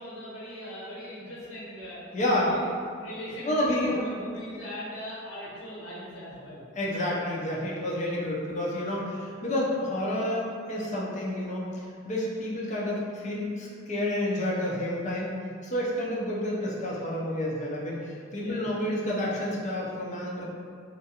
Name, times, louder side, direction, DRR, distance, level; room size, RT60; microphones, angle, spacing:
voice 1, 0.0-2.7 3.0-6.7 6.9-7.0 18.4-18.7, equal, 75° left, -8 dB, 1.0 m, -40 dB
voice 2, 2.1-2.7 3.5-4.1 6.8-15.3 15.6-20.5, left 1 dB, 35° left, -5 dB, 0.5 m, -29 dB
2.5 x 2.3 x 2.8 m, 2.2 s
head